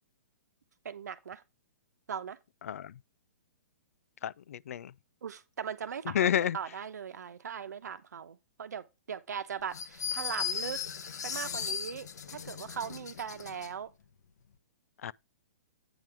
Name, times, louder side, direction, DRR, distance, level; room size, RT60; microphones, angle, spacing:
voice 1, 0.8-1.4 2.1-2.4 5.2-10.8 11.2-13.9, right 7 dB, 85° right, 1.0 m, -39 dB
voice 2, 4.2-4.9 6.1-6.6 15.0-15.1, left 9 dB, 60° left, 0.4 m, -30 dB
sound 1, 9.7-13.7, left 7 dB, 80° left, 1.0 m, -37 dB
8.9 x 5.9 x 3.5 m
hypercardioid pair, 170°, 9 cm